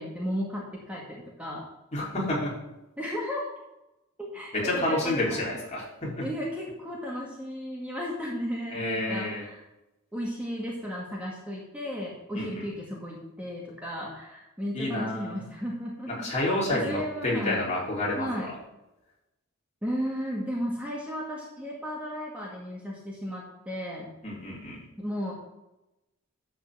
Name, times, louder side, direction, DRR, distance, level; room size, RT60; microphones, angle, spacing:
voice 1, 0.0-1.6 3.0-3.4 4.2-5.4 6.2-9.6 10.1-16.3 16.7-17.6 18.2-18.5 19.8-24.1 25.0-25.3, equal, 5° right, -4 dB, 1.9 m, -34 dB
voice 2, 1.9-2.5 4.5-6.3 8.7-9.4 12.3-12.6 14.7-15.4 16.1-18.6 24.2-24.8, left 1 dB, 30° left, -4 dB, 3.5 m, -29 dB
11.5 x 4.3 x 7.7 m, 0.96 s
head